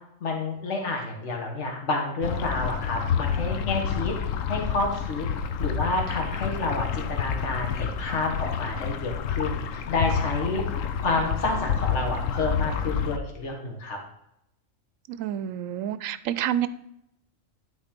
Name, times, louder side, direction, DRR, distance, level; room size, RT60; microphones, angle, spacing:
voice 1, 0.2-4.1 4.5-5.3 5.6-14.0, left 2 dB, 60° left, 1 dB, 1.8 m, -29 dB
sound 1, 2.2-13.2, left 7 dB, 75° left, 1.1 m, -29 dB
voice 2, 15.1-16.7, right 11 dB, 75° right, 15 dB, 1.0 m, -28 dB
11.5 x 4.2 x 5.1 m, 0.79 s
omnidirectional pair, 1.4 m